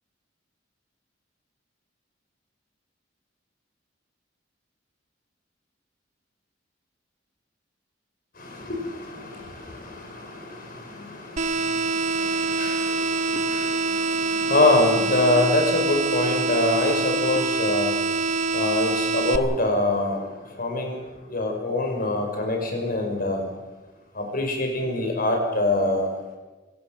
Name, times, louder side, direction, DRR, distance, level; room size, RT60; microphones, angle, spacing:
voice 1, 8.4-18.0 18.5-20.2 20.6-21.0 21.3-23.4 24.2-26.1, left 2 dB, 50° left, 3 dB, 5.5 m, -25 dB
sound 1, 11.4-19.4, right 3 dB, 40° right, 1.0 m, -25 dB
26.0 x 17.0 x 6.6 m, 1.2 s
head